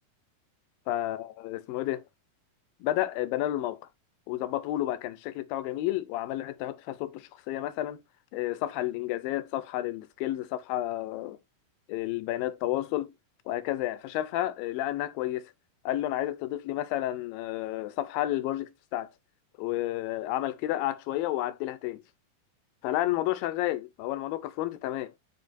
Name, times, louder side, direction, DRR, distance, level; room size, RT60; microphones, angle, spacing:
voice 1, 0.9-2.0 2.8-3.8 4.3-8.0 8.3-11.4 11.9-13.1 13.5-15.4 15.9-19.1 19.6-22.0 22.8-25.1, left 14 dB, 80° left, 2.4 m, -31 dB
12.5 x 5.1 x 2.6 m
omnidirectional pair, 4.2 m